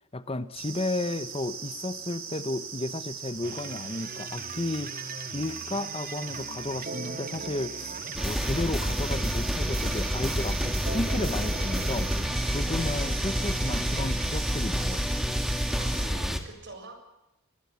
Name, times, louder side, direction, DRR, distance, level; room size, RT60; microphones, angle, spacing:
voice 1, 0.1-8.0 8.2-12.1 12.5-15.0, left 2 dB, 30° left, 13 dB, 0.9 m, -33 dB
sound 1, 0.6-16.1, right 7 dB, 75° right, 5.4 m, -40 dB
sound 2, 3.4-14.3, right 4 dB, 40° right, 1.6 m, -41 dB
sound 3, 8.1-16.4, equal, ahead, 2.3 m, -28 dB
voice 2, 15.8-16.9, right 2 dB, 60° right, 5 dB, 7.4 m, -46 dB
26.5 x 20.5 x 8.4 m, 0.95 s
head